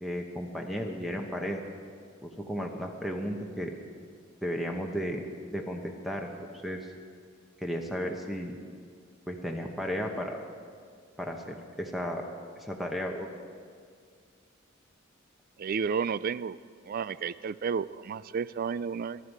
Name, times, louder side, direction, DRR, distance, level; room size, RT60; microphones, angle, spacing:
voice 1, 0.0-1.6 2.2-3.7 4.4-5.2 5.5-6.9 7.6-8.5 9.3-10.4 11.2-12.2 12.6-13.3, equal, ahead, 2 dB, 0.9 m, -34 dB
voice 2, 15.6-16.6 16.9-19.2, right 6 dB, 45° right, 17 dB, 0.3 m, -31 dB
20.5 x 11.5 x 4.7 m, 2.1 s
head